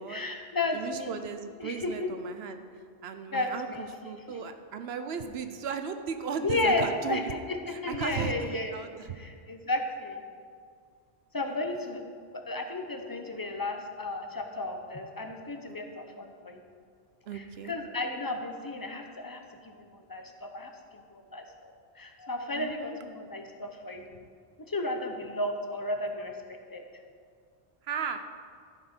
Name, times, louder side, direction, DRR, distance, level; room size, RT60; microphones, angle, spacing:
voice 1, 0.1-1.2 1.6-2.1 3.3-3.9 6.4-7.2 7.5-8.7 9.2-10.2 11.3-12.0 12.3-16.6 17.3-20.7 21.1-24.1 24.7-27.0, left 2 dB, 25° left, 4 dB, 0.6 m, -33 dB
voice 2, 0.7-2.6 3.0-7.3 7.7-9.2 11.5-11.6 15.6-15.8 17.3-17.7 22.5-23.0 27.8-28.2, right 6 dB, 70° right, 8 dB, 0.9 m, -36 dB
13.0 x 5.9 x 4.4 m, 2.1 s
omnidirectional pair, 1.1 m